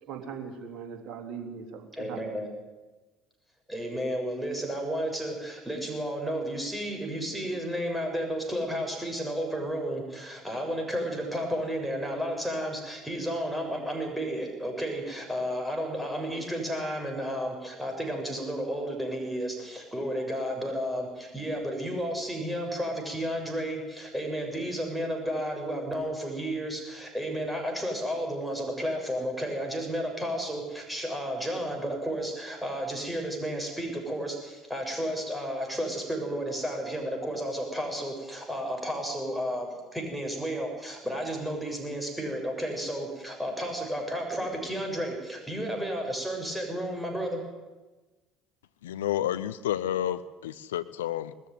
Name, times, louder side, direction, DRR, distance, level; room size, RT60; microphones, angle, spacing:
voice 1, 0.0-2.2, right 6 dB, 50° right, 3 dB, 3.3 m, -40 dB
voice 2, 1.9-2.5 3.7-47.4, equal, ahead, 1 dB, 7.1 m, -32 dB
voice 3, 48.8-51.5, left 12 dB, 75° left, 14 dB, 0.7 m, -30 dB
20.0 x 14.0 x 9.5 m, 1.2 s
figure-of-eight pair, 60°, 0 cm